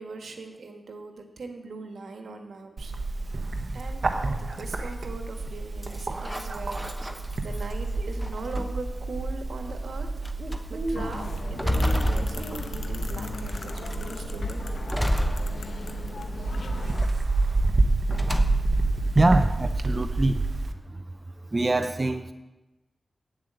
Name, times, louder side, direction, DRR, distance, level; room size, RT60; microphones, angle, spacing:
voice 1, 0.0-2.9 3.7-4.1 4.4-10.1 10.7-14.6 16.3-16.5, right 3 dB, 85° right, 4 dB, 1.5 m, -40 dB
Bird, 2.8-20.7, right 2 dB, 60° right, 1.0 m, -29 dB
sound 1, 5.8-7.7 8.2-8.9 9.7-9.8 10.2-10.6 11.1-13.1 13.5-14.0 14.9-16.1 16.5-17.1 18.1-18.9, equal, ahead, 1.1 m, -30 dB
sound 2, 11.0-17.1, left 3 dB, 75° left, 1.0 m, -37 dB
voice 2, 19.1-20.4 21.5-22.3, right 2 dB, 35° right, 8 dB, 0.7 m, -23 dB
8.3 x 7.7 x 8.9 m, 1.0 s
cardioid pair, 65°, 0 cm